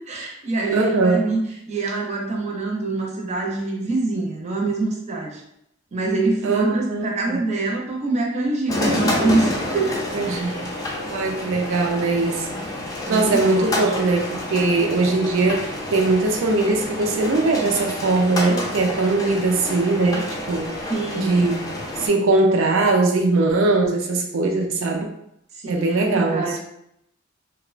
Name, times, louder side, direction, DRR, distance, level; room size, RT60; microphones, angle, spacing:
voice 1, 0.1-1.4 1.7-5.4 5.9-10.7 12.1-12.7 13.0-13.9 20.9-21.4 25.5-26.6, right 3 dB, 35° right, -1 dB, 0.5 m, -25 dB
voice 2, 0.7-1.2 6.4-7.4 10.1-10.7 11.1-12.5 13.1-20.7 21.2-21.7 22.0-25.1 25.7-26.4, right 3 dB, 90° right, 2 dB, 0.4 m, -21 dB
sound 1, 8.7-22.1, left 1 dB, 20° left, 0.4 m, -28 dB
2.8 x 2.1 x 2.4 m, 0.76 s
head